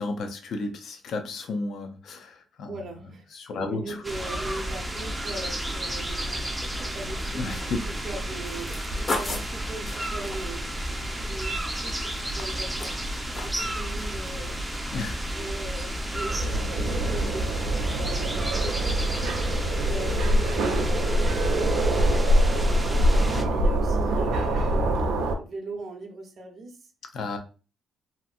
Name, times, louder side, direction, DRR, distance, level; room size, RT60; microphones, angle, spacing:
voice 1, 0.0-2.7 3.3-4.0 7.3-7.9 14.9-15.3 27.1-27.4, left 3 dB, 65° left, 0.5 m, -32 dB
voice 2, 2.7-3.3 3.6-7.4 7.8-10.7 11.2-17.5 18.0-26.8, right 2 dB, 50° right, 0.8 m, -40 dB
sound 1, 4.0-23.4, right 1 dB, 10° right, 0.5 m, -32 dB
sound 2, 8.4-11.8 12.1-13.7 14.0-14.4 14.7-14.8, left 2 dB, 40° left, 0.8 m, -35 dB
sound 3, 16.3-25.4, right 1 dB, 85° right, 0.5 m, -24 dB
2.8 x 2.6 x 2.4 m
cardioid pair, 90°, 0 cm